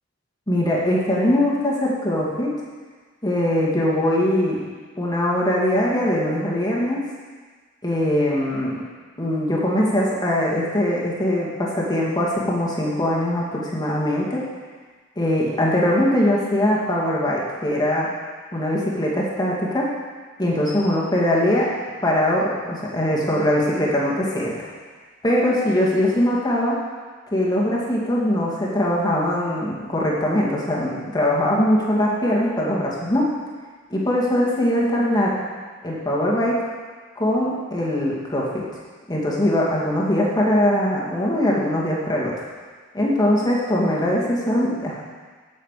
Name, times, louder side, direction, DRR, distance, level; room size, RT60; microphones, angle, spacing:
voice 1, 0.5-2.5 3.2-4.6 5.0-7.0 7.8-8.8 9.2-14.4 15.2-18.1 18.5-19.9 20.4-21.7 22.0-24.7 25.2-26.8 27.3-33.3 33.9-35.4 35.8-36.6 37.2-38.6 39.1-42.3 42.9-45.0, left 1 dB, 20° left, -4 dB, 2.2 m, -21 dB
8.8 x 7.6 x 7.4 m, 1.5 s
head